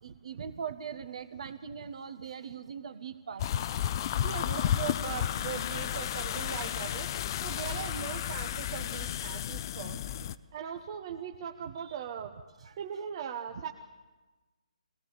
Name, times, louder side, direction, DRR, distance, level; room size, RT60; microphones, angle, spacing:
voice 1, 0.0-3.7 4.5-4.7 7.3-7.4 12.6-12.7, right 7 dB, 55° right, 11 dB, 1.5 m, -41 dB
sound 1, 3.4-10.3, left 10 dB, 35° left, 0.6 m, -32 dB
voice 2, 4.2-7.1 7.4-10.0 10.5-12.3 12.8-13.7, right 8 dB, 40° right, 4 dB, 1.0 m, -39 dB
22.5 x 17.5 x 7.3 m, 1.2 s
figure-of-eight pair, 145°, 4 cm